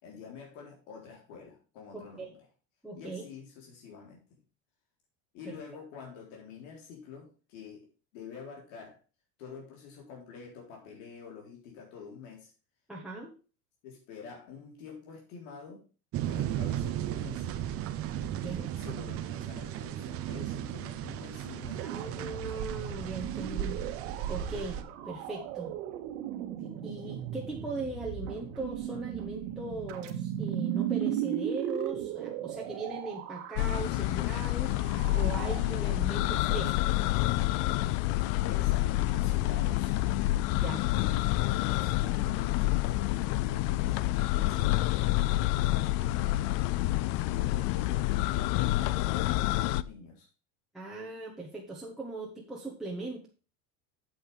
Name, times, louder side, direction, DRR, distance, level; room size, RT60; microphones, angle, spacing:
voice 1, 0.0-2.4 2.9-4.4 5.3-7.9 8.1-9.0 9.4-12.5 13.8-15.8 16.3-17.5 18.4-22.0 38.4-40.0 40.9-43.8 44.1-46.6 47.3-49.1 49.4-50.3, left 5 dB, 80° left, -1 dB, 3.9 m, -47 dB
voice 2, 2.8-3.2 5.4-5.6 12.9-13.3 18.3-18.7 21.8-23.8 24.3-25.7 26.6-34.7 35.1-37.0 40.5-40.8 46.0-46.1 50.7-53.3, right 2 dB, ahead, -4 dB, 1.4 m, -39 dB
sound 1, 16.1-24.8, right 11 dB, 40° right, 0.9 m, -35 dB
sound 2, 21.6-34.0 34.6-35.6, right 10 dB, 85° right, 1.9 m, -37 dB
sound 3, 33.5-49.8, left 16 dB, 55° left, 0.5 m, -28 dB
9.0 x 8.2 x 3.4 m, 0.34 s
cardioid pair, 160°, 36 cm